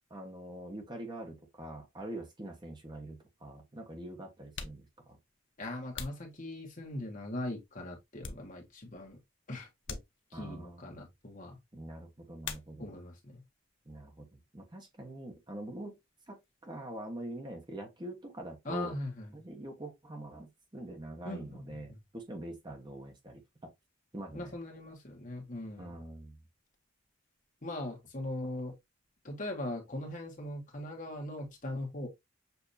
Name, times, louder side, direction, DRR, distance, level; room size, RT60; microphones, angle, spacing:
voice 1, 0.1-5.2 10.3-11.0 11.7-12.9 13.9-16.0 16.3-18.9 19.3-23.7 24.1-24.6 25.8-26.4, right 1 dB, 20° right, 1.1 m, -44 dB
sound 1, 3.7-3.8 4.4-7.0 7.6-8.9 9.2-9.4 9.8-10.6 12.4-13.2 13.5-14.1 14.4-16.6, left 5 dB, 65° left, 0.8 m, -47 dB
voice 2, 5.6-9.2 9.5-10.0 10.3-11.6 12.8-13.4 18.6-19.3 21.2-22.0 24.3-26.0 27.6-28.7 29.2-32.1, left 1 dB, 40° left, 1.4 m, -40 dB
6.9 x 2.8 x 2.6 m
head